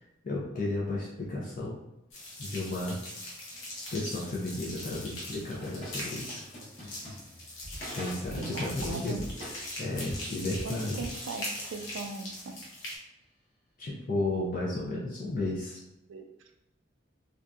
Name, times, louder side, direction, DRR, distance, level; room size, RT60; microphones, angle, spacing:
voice 1, 0.2-1.8 2.4-3.0 3.9-6.4 7.9-9.2 9.8-11.0 13.8-15.8, left 2 dB, 45° left, -5 dB, 0.4 m, -33 dB
sound 1, 2.1-13.0, left 1 dB, 90° left, 0.7 m, -41 dB
sound 2, 5.3-12.7, equal, 30° left, 0.9 m, -44 dB
voice 2, 8.4-9.2 10.6-12.5 16.1-16.3, right 3 dB, 70° right, 4 dB, 0.4 m, -39 dB
2.6 x 2.2 x 2.3 m, 0.89 s
head